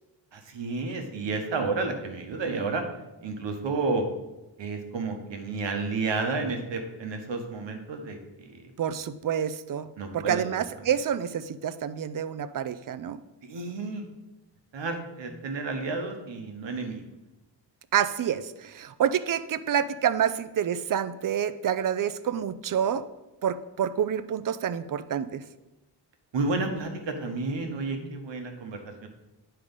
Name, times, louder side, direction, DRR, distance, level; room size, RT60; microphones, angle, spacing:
voice 1, 0.3-2.8 3.2-4.0 4.6-8.5 10.0-10.4 13.5-14.1 14.7-17.0 26.3-29.1, right 3 dB, 90° right, 4 dB, 1.2 m, -31 dB
voice 2, 8.8-13.2 17.9-23.0 23.4-25.4, right 9 dB, 50° right, 14 dB, 0.5 m, -28 dB
9.7 x 3.4 x 5.2 m, 1.0 s
wide cardioid pair, 110°, 43 cm